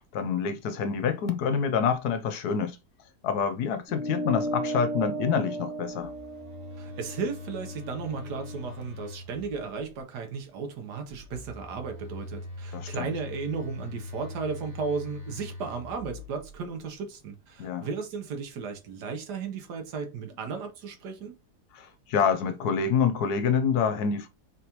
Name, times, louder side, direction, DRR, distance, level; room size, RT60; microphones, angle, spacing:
voice 1, 0.1-2.8 3.2-6.1 12.7-13.1 17.6-17.9 21.7-24.3, left 6 dB, 70° left, 1.2 m, -27 dB
sound 1, 3.9-8.7, right 1 dB, 5° right, 1.8 m, -35 dB
Telephone, 5.9-9.9 11.1-16.8, left 2 dB, 30° left, 1.1 m, -42 dB
voice 2, 6.8-21.3, right 5 dB, 80° right, 1.5 m, -35 dB
4.0 x 3.4 x 2.9 m
omnidirectional pair, 1.8 m